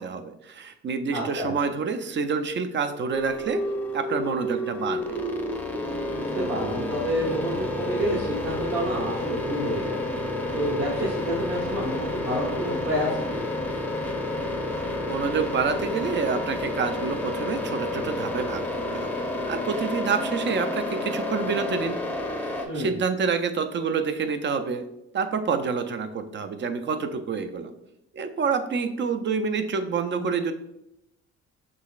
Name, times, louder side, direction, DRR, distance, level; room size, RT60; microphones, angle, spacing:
voice 1, 0.0-3.6 3.9-5.2 15.1-19.1 19.5-22.0 22.4-24.8 25.1-27.7 28.1-30.5, right 5 dB, 40° right, 9 dB, 0.5 m, -28 dB
voice 2, 1.1-1.5 6.2-10.0 10.5-13.4 22.7-23.0, equal, 55° right, -6 dB, 1.7 m, -29 dB
sound 1, 3.1-22.6, left 1 dB, 5° left, 0.6 m, -30 dB
6.2 x 3.1 x 2.4 m, 0.84 s
cardioid pair, 90°, 30 cm